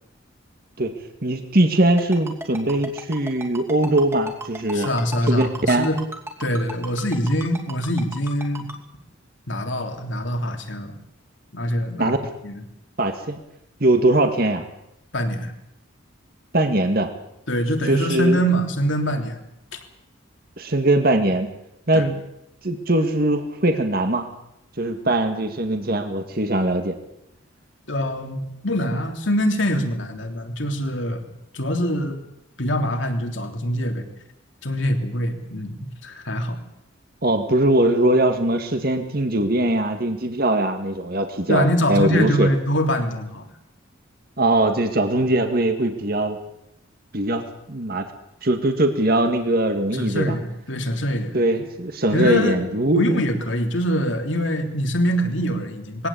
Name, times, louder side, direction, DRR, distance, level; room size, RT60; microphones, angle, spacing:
voice 1, 1.2-4.9 5.3-5.9 12.0-12.2 13.0-13.4 13.8-14.6 16.5-17.1 17.9-18.4 20.6-21.5 21.9-22.2 22.6-24.3 24.8-27.0 37.2-42.5 44.4-46.4 47.1-48.1 48.4-50.3 51.3-53.1, right 1 dB, 50° right, 6 dB, 2.0 m, -21 dB
Ringtone, 2.0-8.7, right 2 dB, 15° right, 2.6 m, -34 dB
voice 2, 4.7-6.0 6.4-8.7 9.5-10.9 11.5-12.2 12.4-12.6 15.1-15.5 17.5-19.4 19.7-19.8 21.9-22.1 27.9-31.3 31.5-32.2 32.6-34.1 34.6-36.6 41.5-43.5 49.9-51.3 52.1-52.7 52.9-56.1, equal, 65° left, 5 dB, 3.1 m, -24 dB
21.5 x 17.5 x 8.6 m, 0.82 s
head